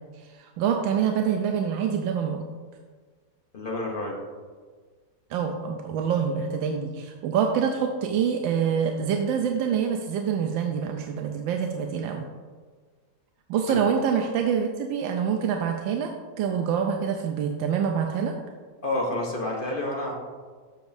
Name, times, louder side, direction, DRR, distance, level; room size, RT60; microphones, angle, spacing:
voice 1, 0.1-2.4 5.3-12.2 13.5-16.1 16.4-18.3, right 7 dB, 90° right, 3 dB, 1.3 m, -26 dB
voice 2, 3.5-4.2 13.7-13.8 18.8-20.1, left 1 dB, 40° left, -1 dB, 0.8 m, -29 dB
9.2 x 7.1 x 2.6 m, 1.5 s
omnidirectional pair, 2.0 m